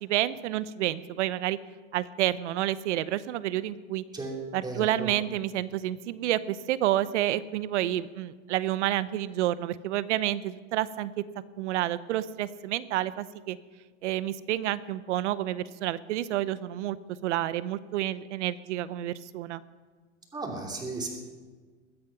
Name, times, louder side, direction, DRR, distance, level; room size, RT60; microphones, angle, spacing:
voice 1, 0.0-1.6 1.9-4.0 4.5-11.1 11.6-13.6 14.0-17.0 17.2-19.6, right 13 dB, 65° right, 16 dB, 0.9 m, -29 dB
voice 2, 4.1-5.1 20.3-21.1, right 3 dB, 10° right, 0 dB, 2.8 m, -35 dB
21.0 x 8.8 x 5.8 m, 1.4 s
supercardioid pair, 140°, 37 cm